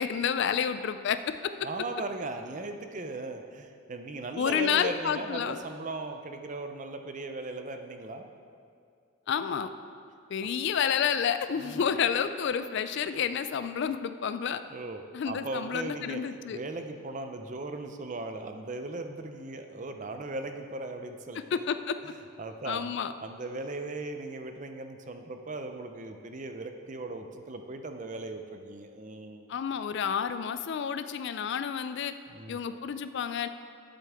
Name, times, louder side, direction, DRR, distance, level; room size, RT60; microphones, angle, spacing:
voice 1, 0.0-1.5 4.4-5.6 9.3-9.7 10.3-14.6 15.1-16.6 21.5-22.0 22.6-23.1 29.5-32.1 32.5-33.5, left 7 dB, 50° left, 11 dB, 0.3 m, -30 dB
voice 2, 1.6-8.3 10.4-10.5 11.5-11.8 14.7-16.2 16.5-21.4 22.4-22.9 23.2-29.5 32.3-32.6, right 2 dB, 35° right, 6 dB, 0.5 m, -38 dB
12.0 x 7.6 x 3.5 m, 2.3 s
head